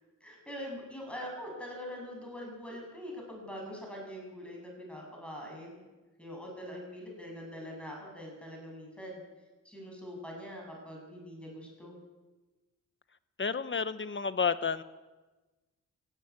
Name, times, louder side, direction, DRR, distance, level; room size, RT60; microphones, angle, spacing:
voice 1, 0.2-5.8 6.2-9.2 9.6-12.0, equal, 5° left, -1 dB, 7.9 m, -43 dB
voice 2, 13.4-14.8, left 5 dB, 35° left, 13 dB, 1.1 m, -30 dB
16.5 x 16.0 x 9.7 m, 1.2 s
wide cardioid pair, 105°, 33 cm